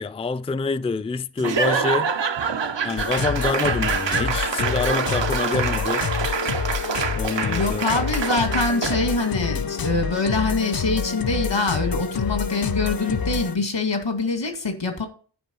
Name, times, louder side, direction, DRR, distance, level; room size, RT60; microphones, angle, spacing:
voice 1, 0.0-2.1 2.8-6.1 7.1-8.0, left 4 dB, 15° left, 0.4 m, -26 dB
Laughter / Applause / Crowd, 1.4-9.1, right 6 dB, 85° right, 0.8 m, -26 dB
sound 1, 3.0-13.6, left 6 dB, 55° left, 0.7 m, -27 dB
voice 2, 7.5-15.1, left 3 dB, 85° left, 2.3 m, -24 dB
11.0 x 4.8 x 5.4 m
wide cardioid pair, 45°, 43 cm